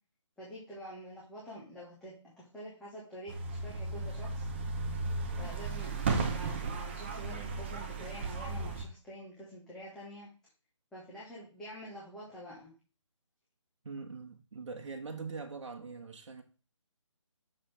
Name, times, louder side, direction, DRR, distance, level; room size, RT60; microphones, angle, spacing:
voice 1, 0.4-2.1 2.5-4.5 5.4-10.3 10.9-12.7, equal, 5° left, 1.1 m, -47 dB
sound 1, 3.3-8.9, right 4 dB, 20° right, 0.7 m, -35 dB
voice 2, 13.8-16.4, right 4 dB, 65° right, 1.3 m, -42 dB
6.6 x 6.3 x 3.3 m
hypercardioid pair, 165°, 17 cm